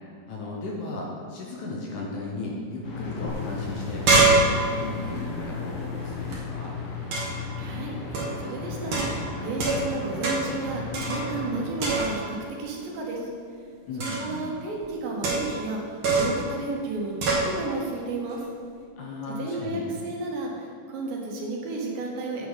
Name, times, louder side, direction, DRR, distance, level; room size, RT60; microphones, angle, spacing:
voice 1, 0.3-6.8 13.9-14.5 19.0-19.9, left 2 dB, 70° left, -2 dB, 2.0 m, -35 dB
sound 1, 2.8-12.0, left 4 dB, 50° left, 2.0 m, -35 dB
sound 2, 3.3-3.4 3.7-6.4 7.1-7.5 8.1-8.4 8.9-10.0 10.2-10.6 10.9-11.5 11.8-12.4 14.0-14.4 15.2-15.7 16.0-16.5 17.2-17.5, right 3 dB, 55° right, 1.6 m, -25 dB
voice 2, 7.6-13.3 14.0-18.5 19.4-22.5, right 3 dB, 75° right, -1 dB, 2.7 m, -32 dB
8.7 x 6.7 x 3.9 m, 2.3 s
omnidirectional pair, 4.1 m